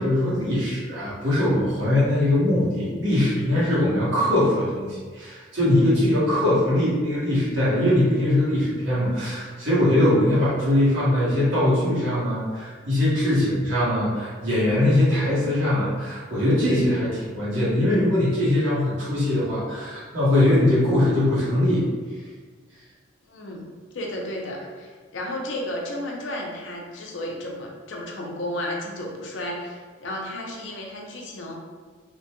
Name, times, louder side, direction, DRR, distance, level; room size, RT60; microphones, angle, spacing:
voice 1, 0.0-21.9, left 1 dB, 85° right, -9 dB, 1.3 m, -21 dB
voice 2, 23.3-31.5, left 1 dB, 85° left, -1 dB, 0.6 m, -33 dB
2.9 x 2.2 x 2.9 m, 1.5 s
head